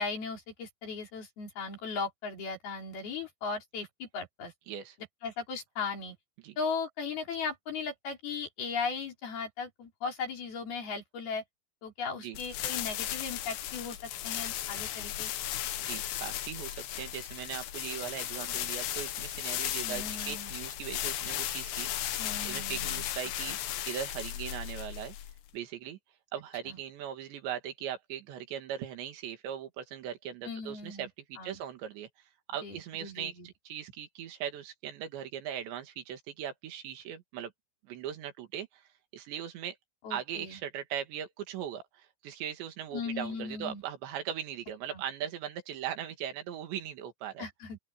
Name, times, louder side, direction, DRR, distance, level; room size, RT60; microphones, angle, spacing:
voice 1, 0.0-4.5 5.2-6.1 6.6-11.4 11.8-15.3 19.8-20.5 22.2-23.0 23.5-23.6 26.7-26.8 30.4-31.1 31.4-31.6 32.6-33.5 40.0-40.6 42.9-43.8 44.9-45.0 47.4-47.8, left 5 dB, 60° left, 6.4 m, -37 dB
sound 1, 12.3-25.5, left 12 dB, 85° left, 3.6 m, -36 dB
voice 2, 15.8-23.6 23.9-25.2 25.5-26.0 26.3-32.1 32.5-37.5 37.8-39.8 40.1-47.5, right 10 dB, 90° right, 4.3 m, -39 dB
open air
omnidirectional pair, 4.9 m